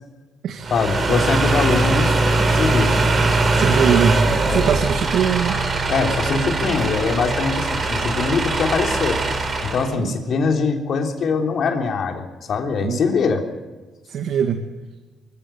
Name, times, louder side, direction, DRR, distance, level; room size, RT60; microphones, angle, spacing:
sound 1, 0.6-9.9, right 2 dB, 40° right, 4.2 m, -21 dB
voice 1, 0.7-2.2 2.5-3.0 4.5-4.6 5.9-9.2 9.6-13.4, left 4 dB, 60° left, 3 dB, 3.5 m, -22 dB
voice 2, 3.5-4.2 4.5-5.6 10.0-10.1 12.8-13.0 14.1-14.6, right 8 dB, 75° right, 6 dB, 1.6 m, -21 dB
23.0 x 16.0 x 9.4 m, 1.3 s
cardioid pair, 90°, 0 cm